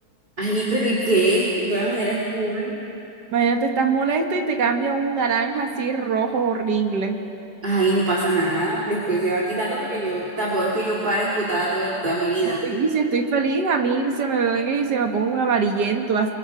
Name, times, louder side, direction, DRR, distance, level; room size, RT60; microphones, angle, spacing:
voice 1, 0.4-2.8 7.6-12.6, right 2 dB, 20° right, -5 dB, 2.5 m, -23 dB
voice 2, 3.3-7.2 12.5-16.3, right 5 dB, 50° right, 3 dB, 2.1 m, -22 dB
29.5 x 23.5 x 5.0 m, 2.8 s
omnidirectional pair, 2.4 m